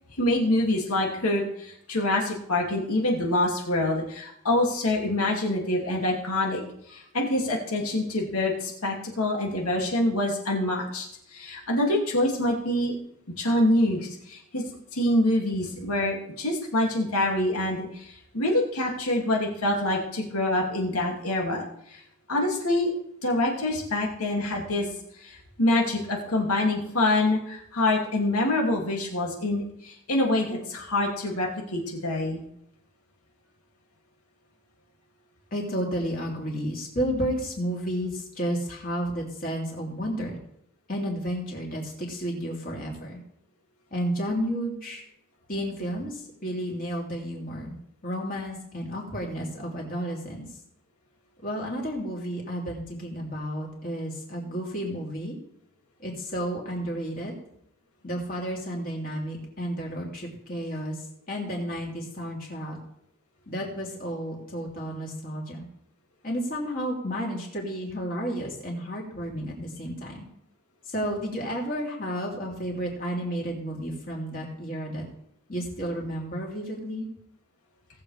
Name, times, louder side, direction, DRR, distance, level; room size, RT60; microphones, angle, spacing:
voice 1, 0.2-6.6 6.9-11.1 11.3-12.9 13.4-14.6 14.9-22.0 22.3-22.9 23.2-24.9 25.2-32.4, left 1 dB, 85° left, -1 dB, 2.6 m, -26 dB
voice 2, 35.5-40.4 40.9-43.2 43.9-45.0 45.5-47.7 48.0-50.5 51.4-55.3 56.0-57.3 58.0-62.8 63.5-65.7 66.2-70.3 70.8-75.0 75.5-77.1, equal, 40° left, -2 dB, 3.1 m, -32 dB
18.5 x 7.3 x 3.4 m, 0.72 s
head